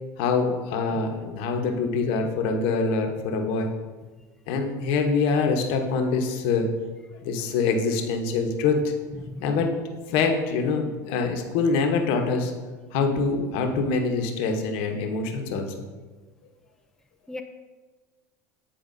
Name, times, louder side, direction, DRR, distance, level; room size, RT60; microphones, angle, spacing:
voice 1, 0.2-3.7 4.5-6.7 7.2-8.9 9.4-9.8 10.1-12.5 12.9-15.7, left 4 dB, 65° left, 4 dB, 0.9 m, -25 dB
voice 2, 9.1-9.6 17.3-17.4, left 2 dB, 5° left, 5 dB, 0.4 m, -38 dB
9.0 x 4.5 x 2.6 m, 1.3 s
hypercardioid pair, 90°, 10 cm